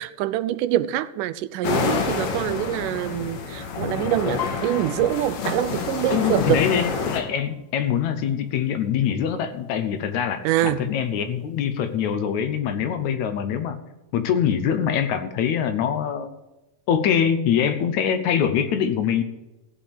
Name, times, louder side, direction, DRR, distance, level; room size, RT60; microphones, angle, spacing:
voice 1, 0.0-6.6 10.4-10.9, right 13 dB, 85° right, 2.2 m, -25 dB
sound 1, 1.6-7.2, left 5 dB, 90° left, 3.1 m, -28 dB
Piano, 4.4-8.0 8.4-8.8 9.1-9.8 10.4-10.5 10.7-11.7 12.1-12.2, left 9 dB, 55° left, 1.1 m, -40 dB
voice 2, 6.1-13.8 14.1-16.3 16.9-19.2, left 8 dB, 70° left, 2.1 m, -24 dB
15.5 x 5.5 x 8.8 m
omnidirectional pair, 3.6 m